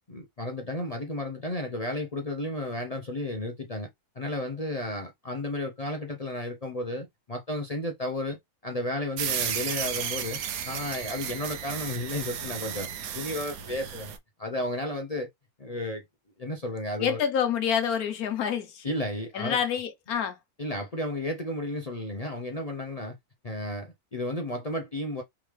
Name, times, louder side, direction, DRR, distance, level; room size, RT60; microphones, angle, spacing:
voice 1, 0.1-3.9 4.1-10.4 10.6-12.9 13.1-14.1 14.4-15.3 15.6-16.0 16.4-17.2 18.8-19.6 20.6-23.2 23.4-25.2, left 1 dB, 40° left, 0.5 m, -33 dB
sound 1, 9.2-14.2, right 8 dB, 70° right, 1.1 m, -33 dB
voice 2, 17.0-18.9 19.3-20.4, left 8 dB, 75° left, 1.3 m, -27 dB
3.6 x 3.2 x 3.2 m
omnidirectional pair, 1.6 m